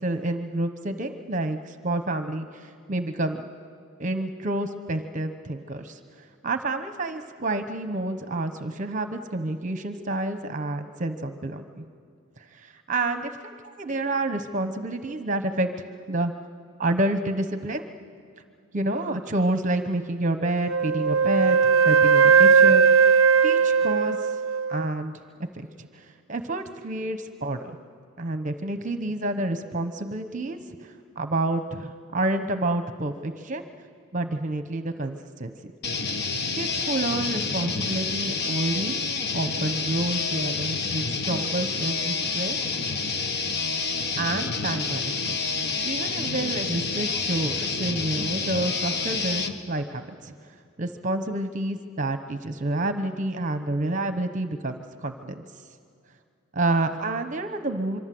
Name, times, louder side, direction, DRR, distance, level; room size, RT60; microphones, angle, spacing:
voice 1, 0.0-3.5 4.0-6.0 6.4-11.8 12.5-13.3 13.6-15.7 16.1-16.3 16.8-17.9 18.7-24.4 24.7-25.1 25.5-27.8 28.2-33.7 34.1-35.5 36.5-39.0 39.3-42.6 44.2-45.4 45.8-50.3 50.8-55.4 56.5-58.0, right 2 dB, 35° right, 9 dB, 1.0 m, -29 dB
Wind instrument woodwind instrument, 20.7-24.9, right 6 dB, 65° right, 0.5 m, -18 dB
sound 1, 35.8-49.5, left 4 dB, 50° left, 1.3 m, -28 dB
26.0 x 24.0 x 7.8 m, 2.3 s
head